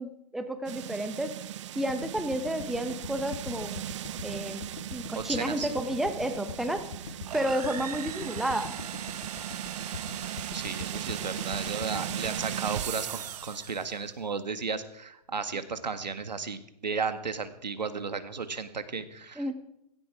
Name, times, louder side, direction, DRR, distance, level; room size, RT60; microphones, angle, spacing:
voice 1, 0.0-1.4 1.7-3.8 4.2-6.9 7.3-8.7 19.4-19.5, right 1 dB, ahead, 8 dB, 1.0 m, -31 dB
sound 1, 0.6-13.9, right 12 dB, 45° right, 0.6 m, -38 dB
sound 2, 1.9-14.1, left 6 dB, 60° left, 2.1 m, -43 dB
voice 2, 5.2-5.7 10.5-19.4, right 5 dB, 85° right, 10 dB, 1.8 m, -34 dB
sound 3, 7.2-13.9, right 8 dB, 60° right, 1.3 m, -41 dB
16.5 x 16.0 x 4.8 m, 0.79 s
hypercardioid pair, 135°, 21 cm